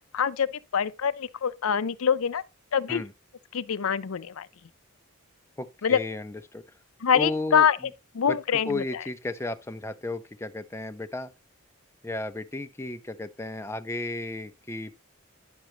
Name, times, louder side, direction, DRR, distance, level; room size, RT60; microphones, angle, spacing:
voice 1, 0.1-0.5 0.7-2.4 2.7-3.0 3.5-4.5 5.8-6.0 7.0-7.8 8.1-8.8, left 7 dB, 75° left, 0.5 m, -24 dB
voice 2, 5.6-6.6 7.1-7.7 8.3-11.3 12.0-14.9, left 2 dB, 10° left, 0.5 m, -34 dB
10.5 x 6.1 x 3.1 m
head